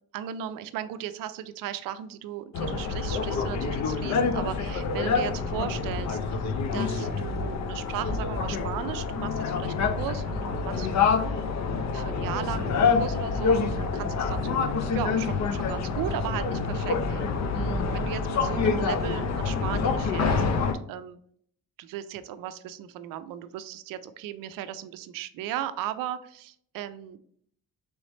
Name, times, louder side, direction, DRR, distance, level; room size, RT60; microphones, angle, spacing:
voice 1, 0.1-11.4 11.8-21.2 21.8-27.2, right 11 dB, 75° right, 12 dB, 0.5 m, -36 dB
sound 1, 2.5-20.7, left 5 dB, 55° left, 0.6 m, -27 dB
3.4 x 3.2 x 4.0 m, 0.63 s
supercardioid pair, 70°, 33 cm